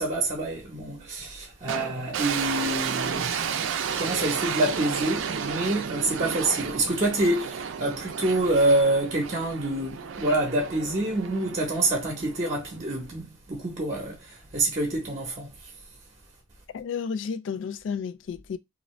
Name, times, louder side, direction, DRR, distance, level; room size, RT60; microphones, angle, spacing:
voice 1, 0.0-3.6 4.0-15.7, right 2 dB, 35° right, 0.8 m, -27 dB
sound 1, 1.7-12.9, right 7 dB, 80° right, 0.4 m, -32 dB
voice 2, 16.7-18.6, left 6 dB, 70° left, 0.3 m, -32 dB
2.6 x 2.5 x 3.1 m
head